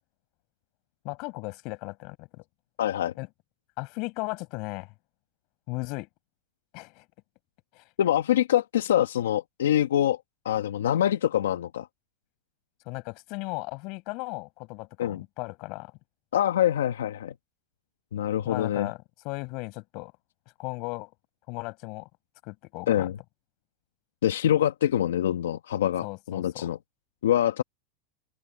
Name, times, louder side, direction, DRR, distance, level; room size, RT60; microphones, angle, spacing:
voice 1, 1.0-2.4 3.2-3.3 3.8-4.9 5.7-6.1 6.7-7.0 7.7-7.8 12.9-15.9 18.4-19.0 19.2-20.1 20.6-21.1 21.5-22.1 22.4-23.1 26.0-26.7, left 27 dB, 55° left, 6.4 m, -36 dB
voice 2, 2.8-3.1 8.0-10.2 10.4-11.9 15.0-15.2 16.3-17.3 18.1-18.9 22.9-23.2 24.2-26.8 27.2-27.6, left 11 dB, 90° left, 1.2 m, -25 dB
hypercardioid pair, 115°, 0 cm